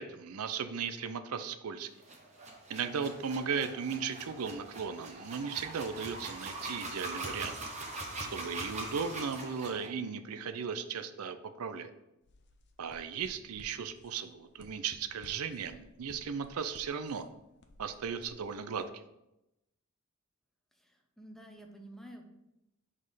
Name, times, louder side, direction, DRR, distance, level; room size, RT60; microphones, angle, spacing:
voice 1, 0.0-1.9 2.7-7.6 8.2-11.9 12.8-17.2 17.8-19.0, right 6 dB, 85° right, 10 dB, 0.5 m, -36 dB
sound 1, 2.0-9.9, right 2 dB, 30° right, 1.0 m, -42 dB
sound 2, 12.2-18.9, left 1 dB, 55° left, 0.6 m, -58 dB
voice 2, 20.7-22.2, right 1 dB, ahead, 2 dB, 0.7 m, -50 dB
5.2 x 4.2 x 5.5 m, 0.91 s
head